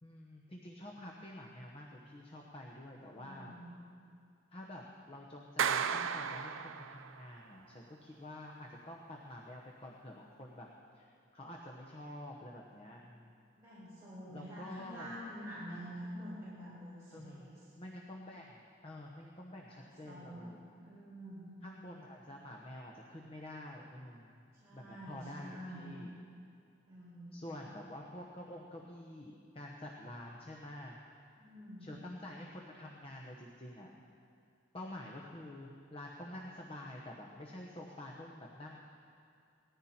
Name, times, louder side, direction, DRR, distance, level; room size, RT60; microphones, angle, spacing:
voice 1, 0.0-3.6 4.5-10.7 10.9-13.5 14.3-15.2 17.1-17.5 17.8-20.6 21.6-24.4 24.7-26.1 27.3-31.0 31.8-33.9 34.7-38.8, left 1 dB, 30° left, -1 dB, 1.0 m, -48 dB
voice 2, 3.0-3.8 13.6-17.6 19.7-19.8 20.1-21.5 24.6-25.9 26.9-27.7 31.4-31.9, equal, 15° right, -12 dB, 4.9 m, -47 dB
Clapping, 5.6-7.2, right 7 dB, 85° right, 0.5 m, -34 dB
19.0 x 14.5 x 4.4 m, 2.4 s
head